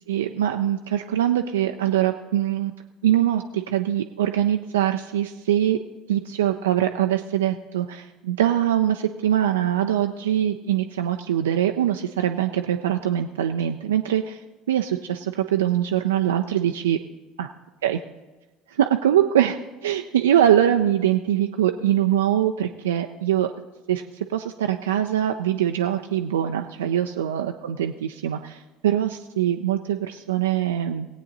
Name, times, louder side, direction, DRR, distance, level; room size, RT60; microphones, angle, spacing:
voice 1, 0.1-2.7 3.0-5.8 6.1-14.4 14.7-17.0 17.4-17.5 17.8-18.0 18.7-23.5 23.9-31.1, right 11 dB, 75° right, 5 dB, 0.4 m, -23 dB
18.5 x 8.5 x 4.0 m, 1.2 s
figure-of-eight pair, 60°, 0 cm